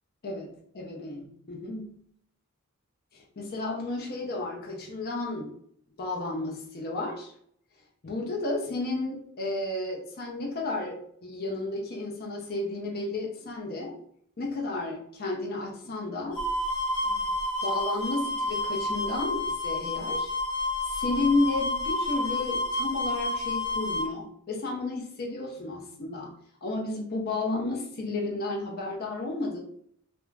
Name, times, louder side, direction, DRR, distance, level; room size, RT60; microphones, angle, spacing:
voice 1, 0.2-2.0 3.1-5.5 6.0-7.3 8.0-13.9 14.4-16.4 17.0-17.2 17.6-20.3 20.8-26.3 26.6-29.6, left 2 dB, 45° left, -1 dB, 0.6 m, -32 dB
sound 1, 16.4-24.1, left 1 dB, 20° left, 0.9 m, -30 dB
2.3 x 2.1 x 3.1 m, 0.66 s
head